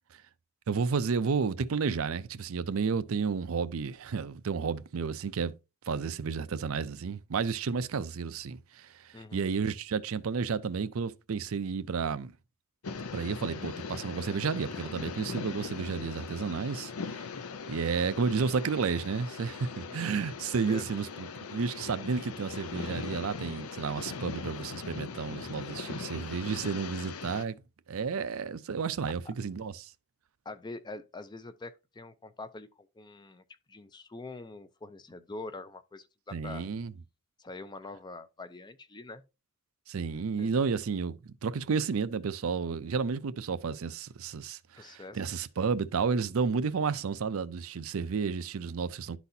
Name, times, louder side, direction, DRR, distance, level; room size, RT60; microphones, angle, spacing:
voice 1, 0.7-5.5 5.9-12.3 13.1-17.3 17.7-27.6 27.9-29.9 36.3-36.9 39.9-49.2, right 5 dB, 65° right, 0.5 m, -32 dB
voice 2, 9.1-9.6 19.9-20.1 20.7-20.9 29.3-29.4 30.5-36.7 37.4-39.2 40.4-40.6 44.8-45.2, left 2 dB, 20° left, 0.5 m, -44 dB
sound 1, 12.8-27.5, left 5 dB, 80° left, 0.6 m, -40 dB
11.5 x 4.1 x 2.7 m
head